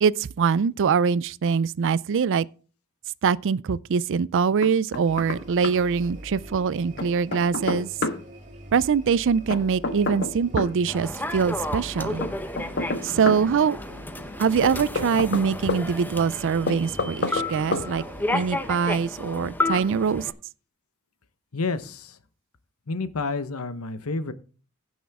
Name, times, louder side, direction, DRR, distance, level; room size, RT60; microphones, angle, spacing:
voice 1, 0.0-2.5 3.2-7.9 8.7-12.2 13.0-13.8 14.4-18.0 18.3-20.2, right 6 dB, 60° right, 0.4 m, -23 dB
Knock, 4.6-5.4 5.6-5.7 7.0-8.2 9.5-10.7 12.2-13.4 14.6-15.8 16.7-17.5 17.7-17.9, left 3 dB, 55° left, 1.3 m, -28 dB
sound 1, 5.1-18.7, equal, 35° right, 2.7 m, -44 dB
Human voice / Subway metro underground, 10.9-20.3, left 2 dB, 10° left, 0.8 m, -32 dB
voice 2, 21.5-22.2 22.9-24.3, left 3 dB, 75° left, 1.0 m, -29 dB
16.0 x 6.3 x 3.5 m
head